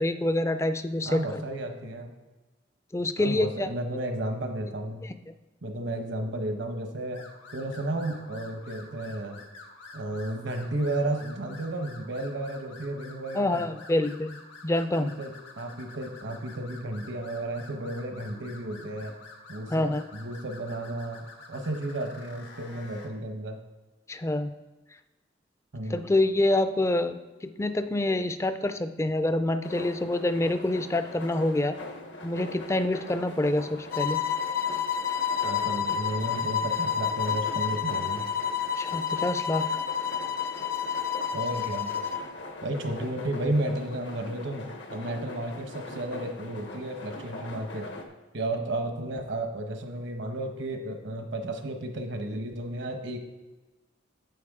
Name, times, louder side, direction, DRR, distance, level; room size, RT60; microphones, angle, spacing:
voice 1, 0.0-1.4 2.9-3.7 5.0-5.1 13.3-14.4 14.6-15.1 19.7-20.0 24.1-24.5 25.9-31.8 32.2-34.2 38.8-39.7, left 1 dB, 15° left, 10 dB, 0.4 m, -26 dB
voice 2, 1.0-2.1 3.2-5.0 5.6-7.2 7.5-9.4 9.9-13.6 15.0-19.1 19.5-23.6 25.7-26.1 35.4-38.2 41.3-41.9 42.6-47.9 48.3-53.2, right 1 dB, 75° right, 5 dB, 1.0 m, -33 dB
sound 1, 7.1-23.1, left 3 dB, 90° left, 1.6 m, -48 dB
sound 2, 29.6-48.0, left 2 dB, 70° left, 1.0 m, -42 dB
sound 3, 33.9-42.3, left 8 dB, 55° left, 0.7 m, -29 dB
9.2 x 7.1 x 3.6 m, 1.2 s
head